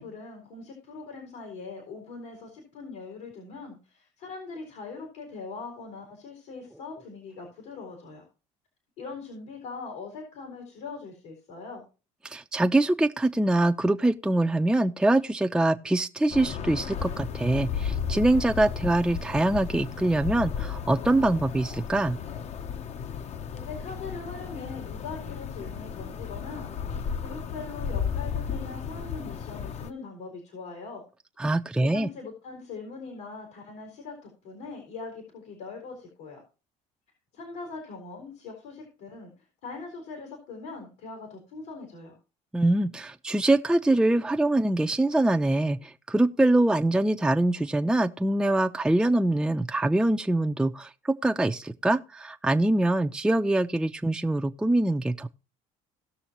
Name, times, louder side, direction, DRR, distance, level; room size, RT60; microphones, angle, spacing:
voice 1, 0.0-8.2 9.0-11.8 23.5-26.7 27.2-31.0 31.8-36.4 37.3-39.3 39.6-42.2, left 4 dB, 90° left, 4.3 m, -41 dB
voice 2, 12.2-22.2 31.4-32.1 42.5-55.3, right 2 dB, 5° right, 0.5 m, -24 dB
sound 1, 16.3-29.9, left 7 dB, 45° left, 0.8 m, -34 dB
18.0 x 6.2 x 3.0 m
supercardioid pair, 95°, 16 cm